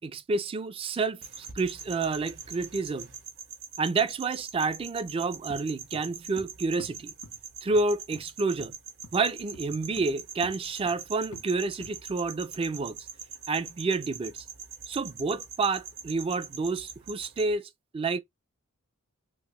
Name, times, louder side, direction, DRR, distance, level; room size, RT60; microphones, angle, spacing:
voice 1, 0.0-3.1 3.8-7.1 7.6-8.7 9.1-13.0 13.5-14.4 14.9-17.6 17.9-18.2, right 3 dB, 25° right, 0.3 m, -29 dB
sound 1, 1.2-17.5, right 7 dB, 60° right, 1.5 m, -44 dB
sound 2, 5.5-5.7 5.9-6.5 6.8-7.0 7.2-7.4 7.7-7.8 8.1-8.2 8.6-8.7 9.0-9.2 9.5-10.2 10.4-10.6 10.9-11.0 11.3-11.5 11.8-11.9, left 1 dB, 90° left, 1.3 m, -46 dB
4.1 x 2.1 x 3.1 m
head